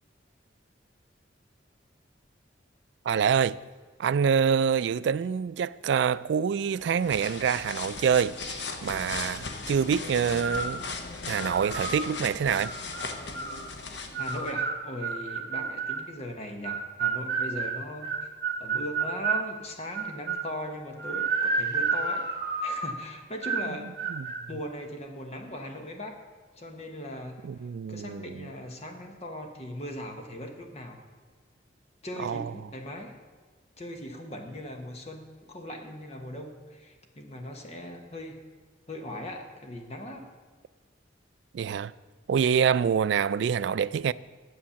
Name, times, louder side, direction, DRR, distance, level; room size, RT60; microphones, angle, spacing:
voice 1, 3.1-3.6 4.0-10.8 11.3-12.7 24.1-24.5 27.4-28.5 32.2-32.5 41.5-41.9 42.3-44.1, right 7 dB, 75° right, 0.3 m, -26 dB
sound 1, 6.8-14.5, left 4 dB, 70° left, 1.0 m, -38 dB
sound 2, 10.4-10.8 11.3-12.0 12.6-13.6 14.1-16.1 16.6-19.5 19.9-20.5 21.0-23.0 23.4-23.7 24.0-24.4, right 5 dB, 55° right, 1.3 m, -30 dB
voice 2, 14.2-18.3 18.6-22.2 22.6-23.9 24.5-26.2 26.6-31.0 32.0-33.1 33.8-38.4 38.9-40.3, left 1 dB, 35° left, 1.1 m, -39 dB
10.0 x 7.2 x 7.0 m
head